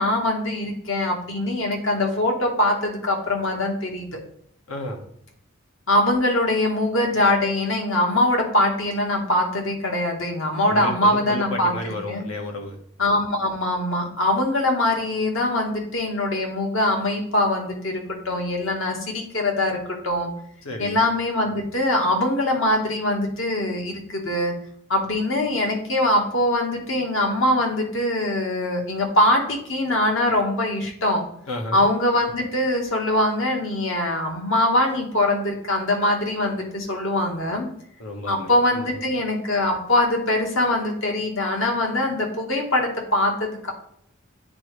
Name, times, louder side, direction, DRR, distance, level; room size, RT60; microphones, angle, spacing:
voice 1, 0.0-4.1 5.9-11.7 12.1-12.3 13.0-19.8 20.0-20.3 20.8-24.5 24.9-31.2 31.7-37.7 38.3-43.7, left 1 dB, 70° left, 1 dB, 1.4 m, -22 dB
voice 2, 4.7-5.0 10.7-12.8 20.6-21.0 31.5-31.8 38.0-39.0, left 1 dB, 90° left, 2 dB, 1.3 m, -32 dB
8.7 x 3.8 x 3.2 m, 0.67 s
head